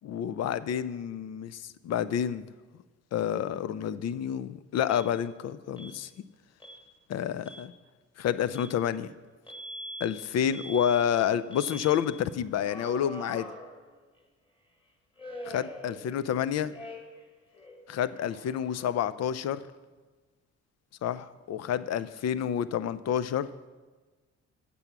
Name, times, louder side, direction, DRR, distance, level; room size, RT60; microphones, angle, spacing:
voice 1, 0.0-2.5 3.1-6.1 7.1-7.7 8.2-9.1 10.0-13.5 15.5-16.7 17.9-19.6 21.0-23.5, left 9 dB, 60° left, 15 dB, 0.5 m, -29 dB
Alarm, 4.9-5.1 5.8-6.0 6.6-6.8 7.3-7.7 8.5-8.8 9.5-10.1 10.5-11.1 11.5-12.0 12.6-14.2 15.2-16.4 16.7-17.3 17.5-19.2, equal, 15° left, 1.6 m, -44 dB
8.5 x 6.9 x 5.9 m, 1.3 s
cardioid pair, 90°, 30 cm